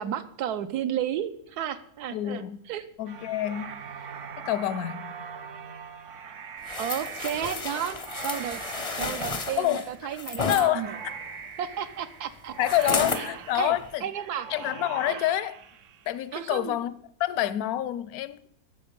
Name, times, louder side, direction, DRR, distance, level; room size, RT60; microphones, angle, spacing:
voice 1, 0.0-2.8 6.8-8.6 9.0-11.0 11.6-12.5 13.2-13.3 13.5-13.8 14.0-14.5 15.1-15.2 16.3-16.8, right 9 dB, 80° right, 1.2 m, -32 dB
voice 2, 2.1-2.6 3.0-3.8 4.4-5.1 9.6-9.9 10.5-11.1 12.6-14.1 14.5-15.6 16.1-18.5, left 13 dB, 75° left, 1.0 m, -27 dB
sound 1, 3.1-16.5, right 6 dB, 60° right, 0.9 m, -42 dB
sound 2, 6.7-10.7 12.6-13.3 13.8-13.9, left 4 dB, 40° left, 0.5 m, -32 dB
12.0 x 7.0 x 5.3 m
omnidirectional pair, 1.7 m